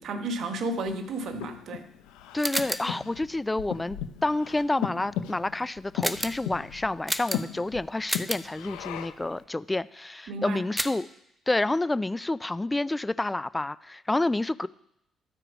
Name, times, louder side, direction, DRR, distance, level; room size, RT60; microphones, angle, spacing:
voice 1, 0.0-1.9 10.3-10.6, right 2 dB, 70° right, 7 dB, 1.2 m, -32 dB
Breathing, 0.8-9.3, left 10 dB, 85° left, 0.6 m, -37 dB
voice 2, 2.3-11.1 11.5-14.7, left 2 dB, 15° left, 17 dB, 0.3 m, -29 dB
sound 1, 2.4-3.0 6.0-6.5 7.1-7.6 8.1-8.5 10.8-11.1, right 1 dB, 10° right, 0.7 m, -31 dB
12.5 x 4.5 x 5.1 m, 0.80 s
supercardioid pair, 60°, 0 cm